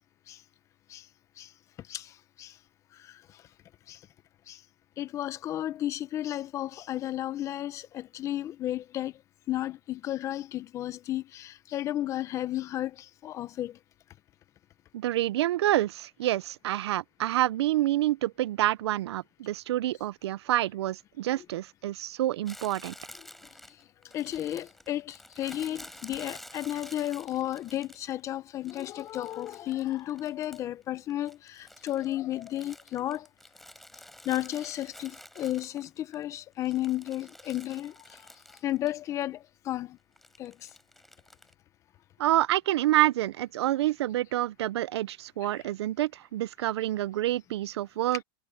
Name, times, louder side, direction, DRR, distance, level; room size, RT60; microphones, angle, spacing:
voice 1, 5.0-9.1 9.5-13.8 21.4-21.5 24.1-33.3 34.2-38.2 38.6-40.0 40.4-40.5 45.5-45.6, left 13 dB, 20° left, 0.7 m, -33 dB
voice 2, 14.9-22.9 42.2-48.2, right 14 dB, 85° right, 0.6 m, -28 dB
Crumpling crinkling, 22.4-28.2 28.6-30.8 31.1-36.1 36.5-39.0 39.2-39.3 40.2-41.5, left 1 dB, ahead, 7.2 m, -50 dB
supercardioid pair, 160°, 13 cm